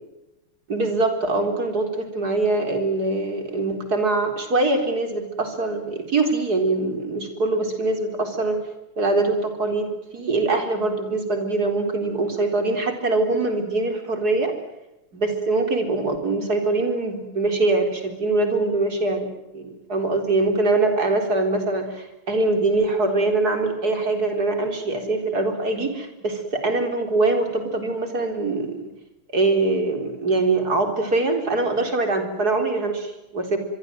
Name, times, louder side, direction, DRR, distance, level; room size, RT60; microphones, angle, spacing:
voice 1, 0.7-8.6 9.0-14.5 15.1-19.3 19.5-28.8 29.3-33.6, right 2 dB, 45° right, 6 dB, 4.6 m, -23 dB
26.5 x 22.5 x 7.8 m, 0.93 s
omnidirectional pair, 2.4 m